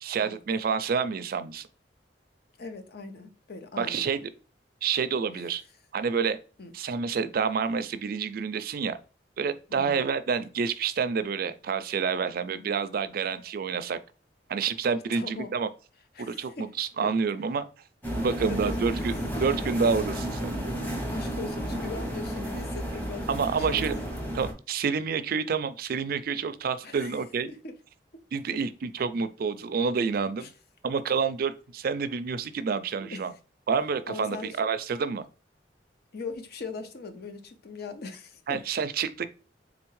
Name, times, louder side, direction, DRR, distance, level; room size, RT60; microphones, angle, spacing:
voice 1, 0.0-1.7 3.8-4.2 4.8-5.6 5.9-6.4 6.7-9.0 9.4-14.0 14.5-15.7 16.2-17.7 18.2-20.5 23.3-24.0 24.3-27.5 28.3-30.5 30.8-33.3 33.7-35.3 38.5-39.2, right 5 dB, 55° right, 0.4 m, -28 dB
voice 2, 2.6-4.2 5.3-5.4 6.6-6.7 9.7-10.0 12.5-12.7 15.1-15.5 16.1-16.7 17.0-17.1 18.5-19.1 19.4-19.5 21.1-23.4 23.7-24.1 26.8-27.2 27.5-27.7 30.4-30.5 33.0-33.2 34.1-34.6 36.1-38.6, left 4 dB, 60° left, 0.7 m, -40 dB
sound 1, 18.0-24.5, equal, 10° left, 1.0 m, -32 dB
3.8 x 3.4 x 3.1 m
head